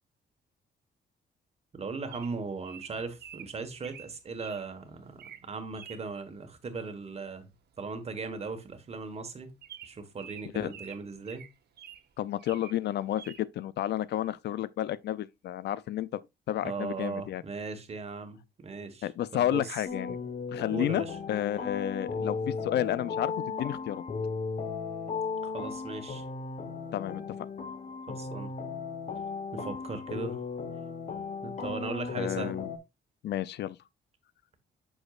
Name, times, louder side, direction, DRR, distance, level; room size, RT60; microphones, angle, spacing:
voice 1, 1.7-7.5 7.8-9.5 9.8-11.4 16.6-19.7 20.7-21.2 25.4-26.2 28.1-28.5 29.5-30.4 31.4-32.7, right 4 dB, 35° right, 1.3 m, -38 dB
Bird vocalization bird call bird song, 2.1-4.6 5.1-5.4 5.8-6.0 7.5-7.8 8.0-8.1 8.4-8.6 9.0-9.1 9.6-12.1 12.4-12.8 13.2-13.4, right 9 dB, 60° right, 0.9 m, -48 dB
voice 2, 12.2-16.2 16.5-17.4 19.0-20.2 20.5-24.0 26.9-27.5 32.2-32.7 33.2-33.8, left 12 dB, 65° left, 0.4 m, -31 dB
sound 1, 19.8-32.8, left 5 dB, 40° left, 1.1 m, -36 dB
7.8 x 6.3 x 2.4 m
cardioid pair, 140°, 19 cm